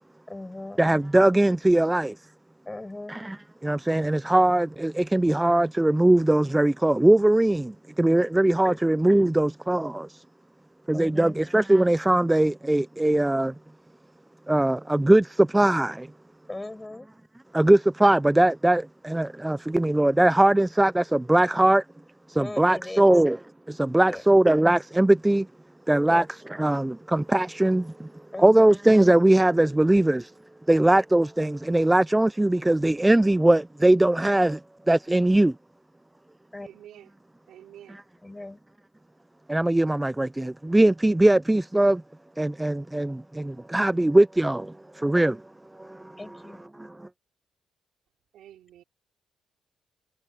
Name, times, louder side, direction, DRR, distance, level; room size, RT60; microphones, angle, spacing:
voice 1, 0.3-0.8 2.6-3.2 8.6-8.8 10.9-11.4 16.5-17.1 22.4-23.1 24.0-24.4 26.1-26.2 28.3-28.8 36.5-36.8 38.2-38.6 46.2-46.6, left 2 dB, 15° left, 6.8 m, -38 dB
voice 2, 0.8-2.1 3.1-3.4 3.6-10.1 10.9-13.5 14.5-16.1 17.5-21.8 22.3-23.4 23.7-25.5 25.9-26.2 26.6-28.1 28.4-30.3 30.7-34.6 34.9-35.5 37.9-38.0 39.5-42.0 42.4-45.4 45.8-46.1 46.8-47.1, right 1 dB, 10° right, 0.5 m, -21 dB
voice 3, 36.6-37.1 37.5-38.0 48.3-48.8, right 11 dB, 80° right, 4.1 m, -48 dB
cardioid pair, 90°, 0 cm